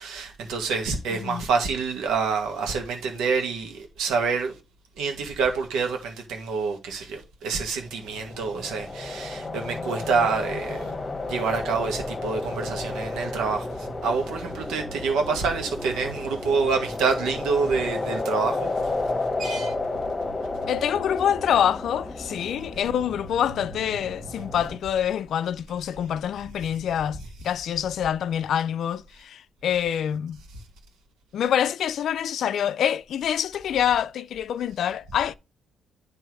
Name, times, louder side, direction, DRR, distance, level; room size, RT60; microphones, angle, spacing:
voice 1, 0.0-4.5 5.0-10.9 11.3-18.7 19.4-19.7, right 5 dB, 85° right, 1.7 m, -27 dB
voice 2, 1.1-1.4 20.7-30.4 31.3-35.3, left 9 dB, 70° left, 0.4 m, -26 dB
sound 1, 7.8-24.8, left 2 dB, 25° left, 1.2 m, -32 dB
9.7 x 3.4 x 4.7 m
cardioid pair, 90°, 0 cm